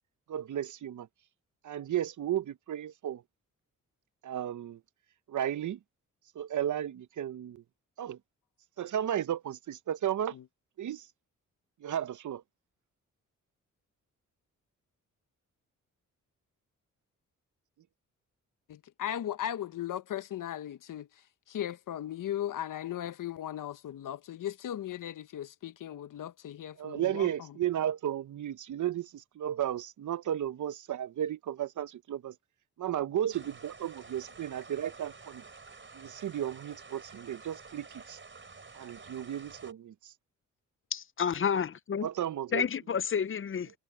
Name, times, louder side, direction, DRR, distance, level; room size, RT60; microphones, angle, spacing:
voice 1, 0.3-1.1 1.6-3.2 4.2-4.8 5.3-5.8 6.3-7.6 8.0-8.2 8.8-10.4 10.8-11.1 11.8-12.4 26.8-32.4 32.8-35.4 35.9-38.2 38.7-40.1 42.0-42.7, right 10 dB, 70° right, 0.8 m, -34 dB
voice 2, 18.7-27.6, left 11 dB, 75° left, 1.1 m, -37 dB
sound 1, 33.3-39.7, right 4 dB, 35° right, 5.1 m, -50 dB
voice 3, 40.9-42.1 42.5-43.8, left 7 dB, 40° left, 0.6 m, -30 dB
cardioid pair, 65°, 32 cm